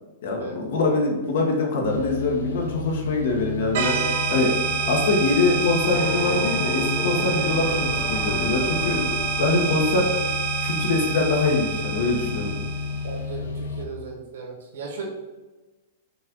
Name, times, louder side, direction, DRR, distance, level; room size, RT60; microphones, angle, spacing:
voice 1, 0.2-4.5 4.9-9.1 9.4-10.1 10.6-12.6, left 3 dB, 65° left, 1 dB, 1.2 m, -23 dB
sound 1, 1.8-13.9, left 4 dB, 85° left, 0.6 m, -32 dB
sound 2, 3.7-13.1, right 7 dB, 55° right, 0.6 m, -27 dB
sound 3, 5.9-10.1, left 4 dB, 30° left, 0.5 m, -33 dB
voice 2, 13.0-15.0, right 4 dB, 80° right, -1 dB, 1.5 m, -36 dB
5.6 x 2.5 x 3.7 m, 1.2 s
supercardioid pair, 160°, 0 cm